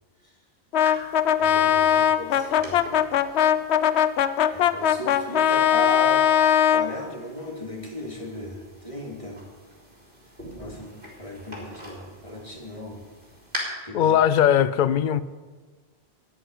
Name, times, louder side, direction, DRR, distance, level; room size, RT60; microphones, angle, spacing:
Brass instrument, 0.7-6.9, left 10 dB, 90° left, 0.9 m, -20 dB
sound 1, 0.8-13.6, equal, 55° right, 3.8 m, -44 dB
voice 1, 1.4-2.8 4.5-6.3 6.7-9.4 10.5-13.0 13.8-14.2, left 1 dB, 30° left, 2.5 m, -36 dB
voice 2, 13.9-15.2, left 10 dB, 60° left, 0.6 m, -19 dB
14.0 x 6.2 x 9.6 m
omnidirectional pair, 1.1 m